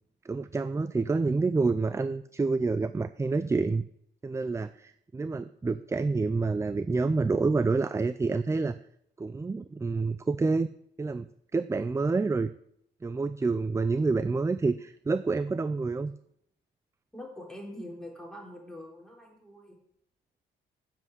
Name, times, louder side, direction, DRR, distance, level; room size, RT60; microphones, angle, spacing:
voice 1, 0.2-3.9 4.2-8.7 9.2-10.7 11.0-11.3 11.5-12.5 13.0-16.1, right 3 dB, 15° right, 13 dB, 0.4 m, -28 dB
voice 2, 17.1-19.8, left 1 dB, 5° left, -2 dB, 3.9 m, -44 dB
7.5 x 7.4 x 8.0 m, 0.72 s
cardioid pair, 90°, 20 cm